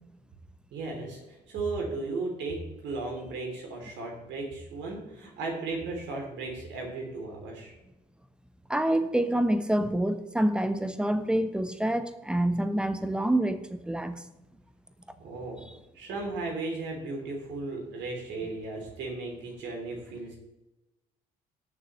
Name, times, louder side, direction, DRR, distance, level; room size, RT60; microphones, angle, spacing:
voice 1, 0.7-2.6 2.8-7.7 15.2-15.6 15.9-20.4, right 3 dB, 65° right, 1 dB, 3.1 m, -35 dB
voice 2, 8.7-14.2, right 1 dB, 5° right, 11 dB, 1.0 m, -27 dB
18.0 x 6.9 x 3.2 m, 0.99 s
hypercardioid pair, 50°, 20 cm